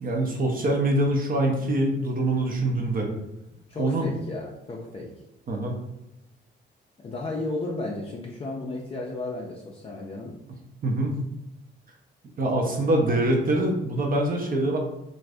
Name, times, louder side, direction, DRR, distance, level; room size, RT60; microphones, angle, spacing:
voice 1, 0.0-3.1 3.8-4.1 5.5-5.7 10.8-11.2 12.4-14.8, right 1 dB, 45° right, 1 dB, 0.6 m, -24 dB
voice 2, 3.7-5.1 7.0-10.4, left 2 dB, 30° left, -2 dB, 0.5 m, -33 dB
2.5 x 2.5 x 3.3 m, 0.89 s
cardioid pair, 90°, 20 cm